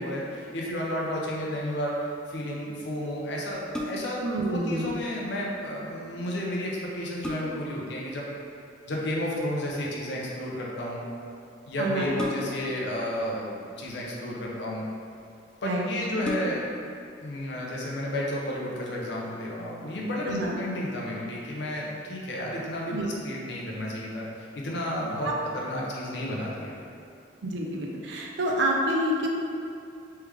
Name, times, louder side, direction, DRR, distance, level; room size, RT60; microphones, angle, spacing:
voice 1, 0.0-8.3 8.9-11.0 11.7-14.8 15.6-16.7 17.2-26.8, left 1 dB, 65° left, -3 dB, 0.7 m, -32 dB
sound 1, 3.7-4.3 6.3-6.4 6.9-7.8 9.3-9.7 12.2-12.8 13.7-14.4 15.2-15.3 15.6-15.7 16.2-16.9 17.3-17.4, left 1 dB, 5° left, 0.3 m, -35 dB
voice 2, 4.2-4.9 11.8-12.1 15.6-15.8 20.3-20.6 22.9-23.1 25.2-25.3 27.4-29.3, right 1 dB, 70° right, -1 dB, 0.5 m, -28 dB
3.3 x 3.2 x 3.4 m, 2.5 s
head